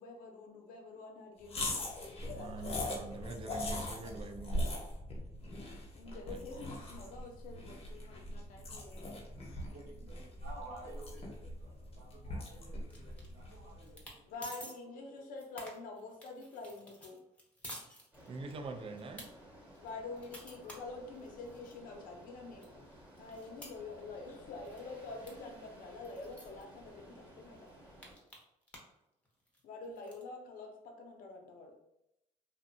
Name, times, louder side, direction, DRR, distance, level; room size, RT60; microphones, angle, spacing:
voice 1, 0.0-1.9 2.2-2.9 5.4-9.0 14.3-17.2 19.8-22.9 23.2-27.6 29.6-31.7, left 3 dB, 75° left, 2 dB, 0.6 m, -47 dB
sound 1, 1.5-13.9, left 1 dB, 45° left, 0.7 m, -41 dB
voice 2, 2.4-4.6 18.3-19.3, right 3 dB, 40° right, 6 dB, 0.4 m, -44 dB
voice 3, 9.4-14.3 15.0-15.2 20.6-20.8, right 2 dB, 85° right, -6 dB, 1.0 m, -53 dB
sound 2, 12.9-13.5 13.8-14.2 14.4-14.7 15.2-18.6 19.0-19.3 19.7-21.8 22.2-22.3 22.6-24.4 24.6-24.9 25.3-25.4 25.6-25.7 26.0-26.6 27.2-27.3 27.6-29.0 29.3-30.2, equal, 10° left, 0.8 m, -51 dB
sound 3, 18.1-28.2, right 1 dB, 10° right, 1.1 m, -56 dB
2.6 x 2.1 x 2.6 m, 0.84 s
cardioid pair, 90°, 14 cm